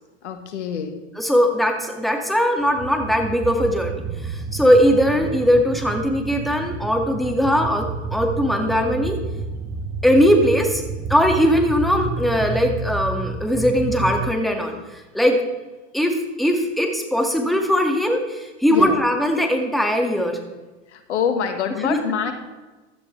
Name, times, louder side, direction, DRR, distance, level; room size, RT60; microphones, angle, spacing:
voice 1, 0.2-0.9 18.7-19.0 20.9-22.3, left 7 dB, 80° left, 7 dB, 1.6 m, -25 dB
voice 2, 1.2-9.2 10.0-10.8 11.1-15.4 15.9-20.4 21.8-22.0, equal, ahead, 3 dB, 2.1 m, -20 dB
sound 1, 2.7-14.3, right 4 dB, 20° right, 0.7 m, -30 dB
16.0 x 12.0 x 3.4 m, 1.2 s
hypercardioid pair, 90°, 35 cm